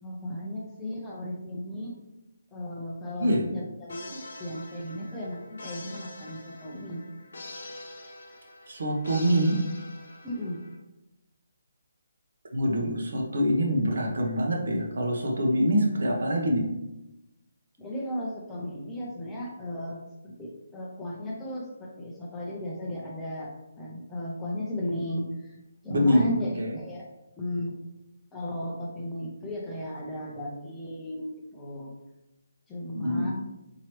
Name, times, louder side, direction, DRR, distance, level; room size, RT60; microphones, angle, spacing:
voice 1, 0.0-1.9 2.5-7.1 10.2-10.6 17.8-20.0 20.4-23.5 23.8-25.5 25.8-26.5 26.8-27.1 27.4-27.7 28.3-31.9 32.7-33.3, left 1 dB, 10° left, -4 dB, 0.7 m, -35 dB
sound 1, 3.9-10.8, left 2 dB, 65° left, 1.1 m, -45 dB
voice 2, 8.7-9.6 12.5-16.6 25.9-26.8 32.9-33.3, equal, 70° right, 0 dB, 1.0 m, -25 dB
4.8 x 2.9 x 3.0 m, 0.93 s
hypercardioid pair, 160°, 0 cm